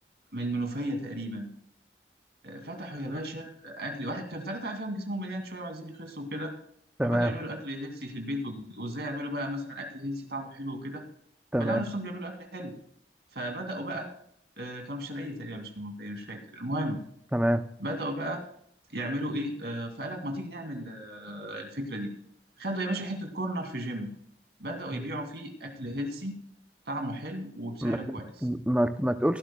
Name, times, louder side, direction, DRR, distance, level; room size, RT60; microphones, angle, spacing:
voice 1, 0.3-1.5 2.4-6.5 7.0-11.0 11.6-12.7 13.3-14.1 14.6-17.0 17.8-18.4 18.9-22.1 22.6-24.1 24.6-26.4 26.9-28.3, right 1 dB, 70° right, 5 dB, 2.4 m, -35 dB
voice 2, 7.0-7.3 11.5-11.8 17.3-17.6 24.9-25.0 27.8-29.4, right 1 dB, 5° right, 9 dB, 0.5 m, -26 dB
18.0 x 11.5 x 2.3 m, 0.69 s
head